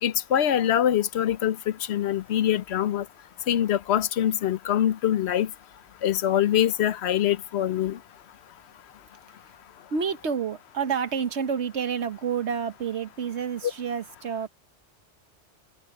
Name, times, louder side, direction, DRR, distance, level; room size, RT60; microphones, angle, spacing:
voice 1, 0.0-3.0 3.5-5.5 6.0-8.0, left 10 dB, 70° left, 0.9 m, -24 dB
voice 2, 9.9-14.5, right 7 dB, 80° right, 1.4 m, -29 dB
open air
omnidirectional pair, 1.1 m